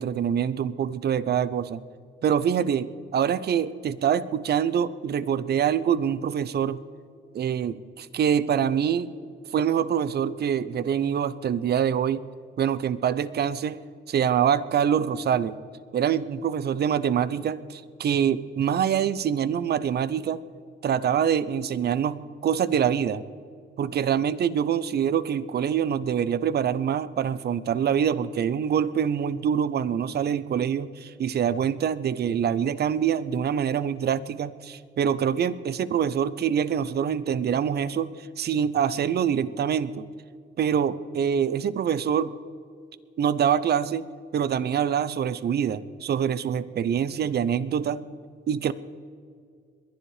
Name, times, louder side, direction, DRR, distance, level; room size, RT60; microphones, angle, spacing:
voice 1, 0.0-1.8 2.2-6.8 7.3-9.1 9.5-12.3 12.6-13.8 14.1-15.6 15.9-20.4 20.8-23.2 23.8-40.1 40.6-42.3 43.2-44.0 44.3-48.0 48.5-48.7, right 8 dB, 55° right, 17 dB, 0.7 m, -25 dB
22.0 x 10.0 x 5.0 m, 2.2 s
cardioid pair, 90°, 20 cm